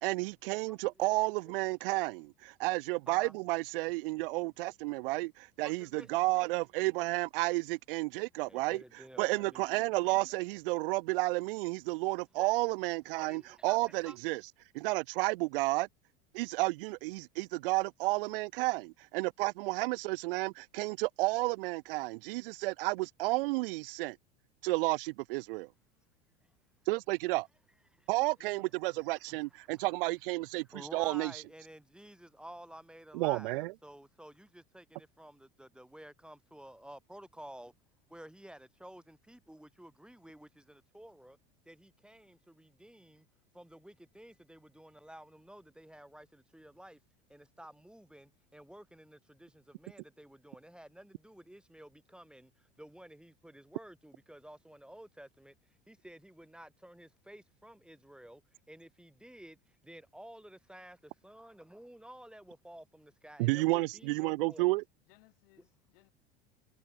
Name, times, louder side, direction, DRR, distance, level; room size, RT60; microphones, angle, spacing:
voice 1, 0.0-8.8 9.2-14.4 14.7-15.9 16.3-24.2 24.6-25.7 26.9-27.5 28.1-31.4 33.1-33.7 63.4-64.8, right 22 dB, 65° right, 0.6 m, -31 dB
voice 2, 0.7-1.1 1.4-1.5 3.1-3.3 5.6-6.5 8.5-9.7 10.3-10.4 12.4-12.5 13.2-14.2 27.9-28.1 29.2-29.4 29.6-29.9 30.7-37.7 38.1-41.4 41.6-43.3 43.5-47.0 47.3-55.5 55.9-58.4 58.7-64.7, right 1 dB, 5° right, 6.7 m, -52 dB
voice 3, 28.4-29.0 64.7-66.1, left 21 dB, 70° left, 5.6 m, -66 dB
hypercardioid pair, 85°, 30 cm